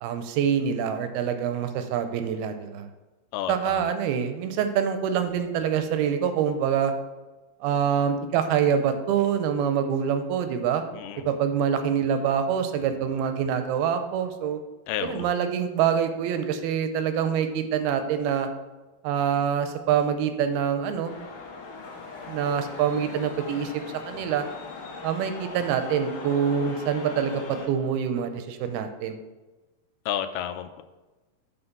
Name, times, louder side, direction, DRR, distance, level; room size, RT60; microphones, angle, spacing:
voice 1, 0.0-2.9 3.5-6.9 7.6-10.8 11.3-14.6 15.0-18.5 19.0-21.1 22.3-24.5 25.0-29.2, right 8 dB, 85° right, 8 dB, 2.5 m, -25 dB
voice 2, 3.3-3.8 10.9-11.2 14.9-15.3 30.1-30.8, left 10 dB, 85° left, 10 dB, 2.5 m, -31 dB
sound 1, 21.1-27.7, left 4 dB, 55° left, 1.7 m, -40 dB
8.8 x 4.2 x 5.8 m, 1.2 s
omnidirectional pair, 4.5 m